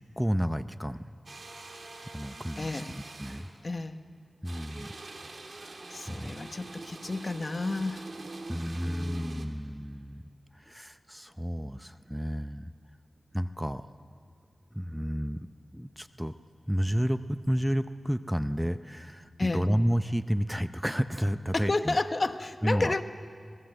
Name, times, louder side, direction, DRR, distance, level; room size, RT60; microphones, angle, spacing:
voice 1, 0.2-1.0 2.0-2.9 3.2-3.5 4.4-4.9 5.5-6.3 8.5-12.7 13.3-13.9 14.7-15.4 15.7-16.3 16.7-22.0 22.6-23.0, equal, 5° right, 11 dB, 0.6 m, -31 dB
sound 1, 1.3-3.6 4.4-9.5, right 2 dB, 60° right, 2.0 m, -45 dB
voice 2, 2.6-3.0 3.6-4.0 5.9-8.0 8.8-9.5 19.4-19.7 21.5-23.0, left 2 dB, 45° left, 9 dB, 1.0 m, -31 dB
25.0 x 19.0 x 7.8 m, 2.3 s
wide cardioid pair, 60°, 0 cm